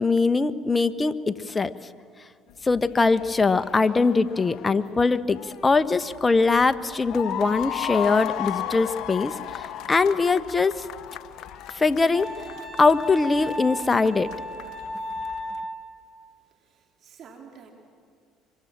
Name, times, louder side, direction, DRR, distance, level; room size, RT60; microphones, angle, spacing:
voice 1, 0.0-1.7 2.6-10.8 11.7-12.3 12.8-14.3, left 4 dB, 25° left, 13 dB, 1.2 m, -22 dB
sound 1, 2.5-15.6, left 11 dB, 60° left, 1.1 m, -36 dB
Wind instrument woodwind instrument, 12.1-15.8, equal, 10° right, 6.5 m, -35 dB
voice 2, 16.6-17.7, right 6 dB, 55° right, 2 dB, 3.5 m, -48 dB
25.5 x 23.5 x 7.5 m, 2.2 s
hypercardioid pair, 65°, 0 cm